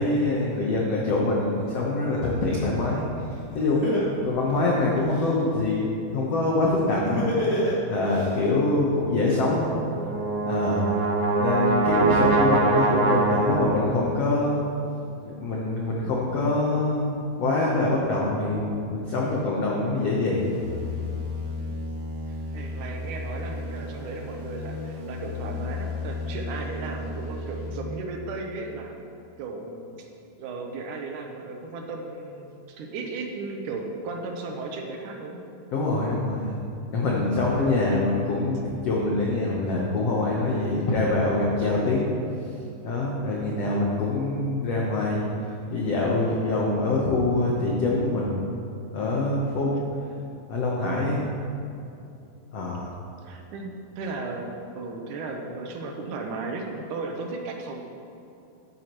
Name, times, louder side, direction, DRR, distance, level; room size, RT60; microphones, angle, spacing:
voice 1, 0.0-3.1 3.5-3.9 4.2-7.3 7.9-9.7 10.5-10.9 11.4-14.7 15.2-20.5 35.7-36.5 36.9-42.1 42.8-45.3 45.7-48.4 48.9-49.8 50.5-51.2 52.5-52.9, left 2 dB, 75° left, -3 dB, 1.4 m, -24 dB
Laughter, 3.3-3.4 3.8-5.3 7.0-8.2, equal, 15° left, 1.3 m, -26 dB
Brass instrument, 9.8-14.0, right 3 dB, 85° right, 3.1 m, -23 dB
sound 1, 20.4-27.7, left 2 dB, 55° right, 2.5 m, -34 dB
voice 2, 22.3-28.9 29.4-30.1 30.4-35.4 37.3-37.6 41.6-41.7 49.7-50.0 53.2-57.8, right 3 dB, 70° right, 2 dB, 2.1 m, -35 dB
12.0 x 10.5 x 3.1 m, 2.6 s
omnidirectional pair, 4.4 m